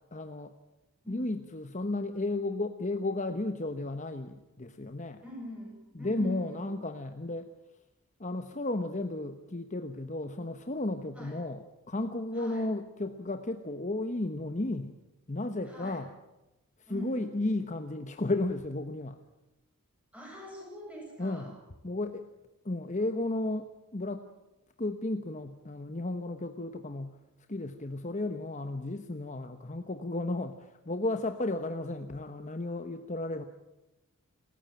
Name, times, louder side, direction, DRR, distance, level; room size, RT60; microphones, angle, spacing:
voice 1, 0.1-0.5 1.1-5.2 5.9-7.5 8.2-14.9 15.3-16.1 16.8-19.2 21.2-21.6 21.8-22.3 22.6-24.2 24.8-27.2 27.5-33.4, left 2 dB, 35° left, 8 dB, 1.1 m, -34 dB
voice 2, 5.2-6.7 11.1-11.4 12.3-12.7 15.7-16.0 16.9-17.3 20.1-21.5, left 2 dB, 5° right, -1 dB, 8.0 m, -43 dB
29.5 x 15.0 x 9.0 m, 0.98 s
head